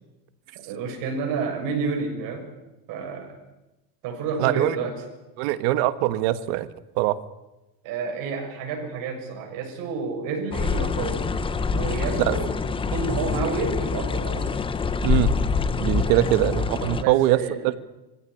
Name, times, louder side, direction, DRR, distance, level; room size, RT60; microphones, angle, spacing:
voice 1, 0.6-2.5 2.9-3.4 4.0-5.0 7.8-12.6 12.9-14.5 16.1-16.3 16.8-17.6, right 4 dB, 45° right, 1 dB, 7.1 m, -30 dB
voice 2, 4.4-4.8 5.4-6.7 7.0-7.2 12.3-12.4 15.0-15.3 15.8-17.4 17.6-17.8, right 15 dB, 65° right, 12 dB, 1.6 m, -22 dB
sound 1, 10.5-17.0, left 5 dB, 10° left, 0.8 m, -25 dB
23.0 x 16.5 x 9.9 m, 1.0 s
cardioid pair, 160°, 45 cm